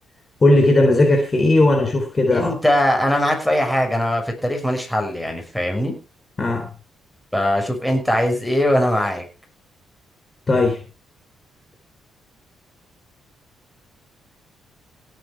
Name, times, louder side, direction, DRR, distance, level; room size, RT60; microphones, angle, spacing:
voice 1, 0.4-2.5 6.4-6.7 10.5-10.8, left 2 dB, 30° left, 4 dB, 3.7 m, -16 dB
voice 2, 2.3-5.9 7.3-9.2, left 1 dB, 5° left, 3 dB, 5.9 m, -21 dB
17.0 x 8.6 x 4.9 m, 0.32 s
cardioid pair, 90°, 0 cm